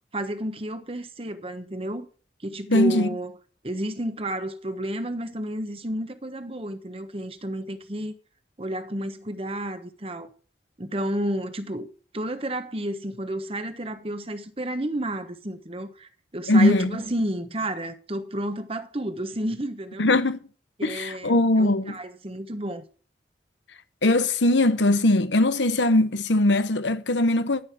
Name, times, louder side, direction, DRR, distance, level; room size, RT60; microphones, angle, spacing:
voice 1, 0.1-2.1 2.4-3.4 3.6-8.1 8.6-10.3 10.8-20.1 20.8-22.8, right 1 dB, 30° right, 1.2 m, -31 dB
voice 2, 2.7-3.1 16.5-16.9 20.0-20.4 20.8-21.9 24.0-27.6, left 2 dB, 90° left, 1.1 m, -20 dB
13.0 x 6.4 x 7.5 m
head